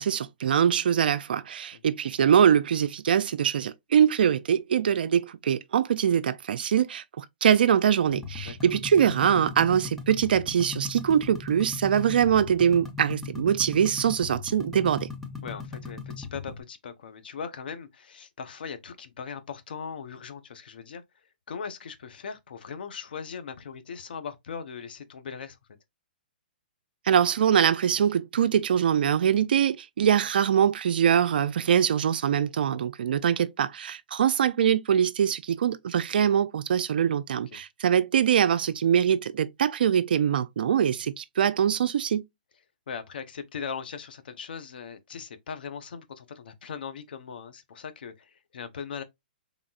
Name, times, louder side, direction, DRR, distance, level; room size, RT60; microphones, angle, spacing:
voice 1, 0.0-15.1 27.1-42.2, right 8 dB, 65° right, 0.4 m, -23 dB
sound 1, 8.1-16.6, left 5 dB, 5° left, 0.8 m, -39 dB
voice 2, 15.4-21.0 21.5-25.6 32.6-32.8 37.5-37.6 42.9-49.0, left 6 dB, 70° left, 0.9 m, -39 dB
3.9 x 3.5 x 2.4 m
hypercardioid pair, 140°, 5 cm